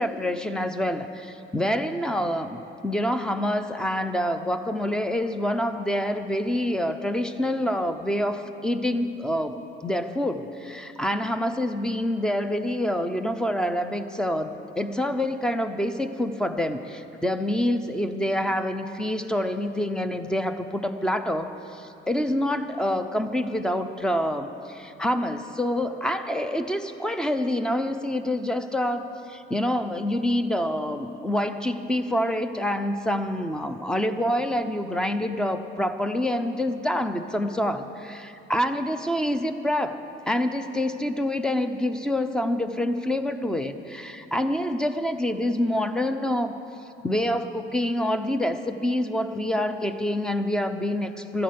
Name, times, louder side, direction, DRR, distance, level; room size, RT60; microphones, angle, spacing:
voice 1, 0.0-2.6 2.8-9.6 9.8-40.0 40.3-46.5 47.0-51.4, left 1 dB, 5° left, 9 dB, 0.6 m, -27 dB
13.0 x 11.0 x 9.4 m, 2.9 s
cardioid pair, 160°, 21 cm